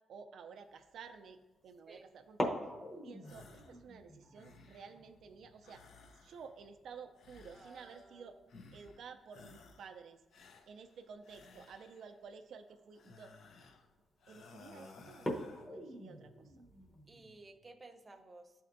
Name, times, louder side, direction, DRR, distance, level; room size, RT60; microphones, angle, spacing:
voice 1, 0.1-2.6 3.0-5.8 6.1-8.4 8.7-10.2 10.7-13.3 14.3-15.3 15.7-16.5, right 5 dB, 70° right, 7 dB, 0.4 m, -52 dB
sound 1, 0.7-1.0 2.2-8.7 8.9-9.0 9.4-9.8 10.8-11.0 11.6-11.7 12.2-12.3 12.7-13.0 13.6-14.0 14.4-14.5 15.1-17.4, equal, 20° left, 0.8 m, -44 dB
sound 2, 3.2-3.8 4.2-5.0 5.6-6.7 7.1-8.2 8.5-9.0 9.3-9.9 10.3-12.2 12.9-13.9 14.2-15.7, left 4 dB, 70° left, 0.6 m, -58 dB
voice 2, 7.5-8.4 17.1-18.5, right 2 dB, 20° right, 5 dB, 0.5 m, -56 dB
12.0 x 4.2 x 2.6 m, 1.1 s
cardioid pair, 130°, 0 cm